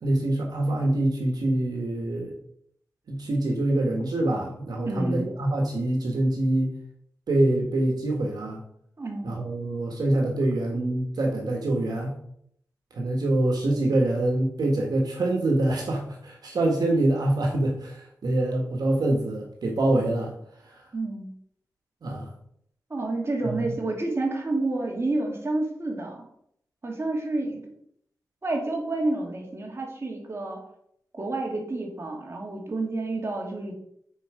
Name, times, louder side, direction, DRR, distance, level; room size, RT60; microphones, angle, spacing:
voice 1, 0.0-2.4 3.1-6.7 7.3-8.6 9.2-12.2 12.9-20.3 20.6-20.8 22.0-22.3 23.4-23.6, right 1 dB, 80° right, 0 dB, 1.6 m, -25 dB
voice 2, 4.9-5.3 9.0-9.3 20.9-21.3 22.9-26.2 26.8-27.7 28.4-30.6 31.1-33.7, right 2 dB, 40° right, 0 dB, 2.3 m, -29 dB
8.3 x 4.6 x 5.0 m, 0.69 s
wide cardioid pair, 70°, 7 cm